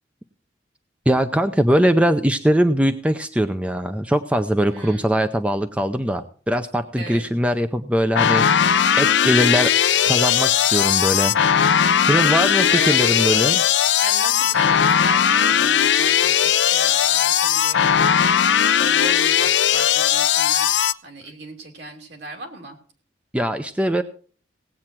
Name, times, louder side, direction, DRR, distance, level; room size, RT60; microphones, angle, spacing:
voice 1, 1.1-9.7 10.0-13.6 23.3-24.0, equal, 5° right, 8 dB, 0.5 m, -21 dB
voice 2, 4.7-5.1 7.0-7.3 12.1-13.5 14.0-22.8, right 2 dB, 65° right, 2 dB, 2.9 m, -36 dB
sound 1, 8.2-20.9, left 9 dB, 75° left, 0.5 m, -18 dB
18.0 x 8.6 x 4.5 m, 0.44 s
head